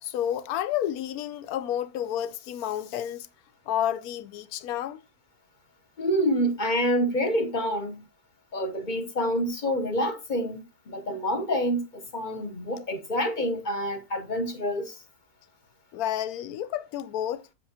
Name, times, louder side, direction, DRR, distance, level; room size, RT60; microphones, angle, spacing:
voice 1, 0.0-3.3 3.7-5.0 15.9-17.5, left 11 dB, 70° left, 1.0 m, -30 dB
voice 2, 6.0-8.0 8.5-15.0, equal, 35° left, 0.8 m, -27 dB
7.4 x 7.3 x 2.8 m
omnidirectional pair, 1.8 m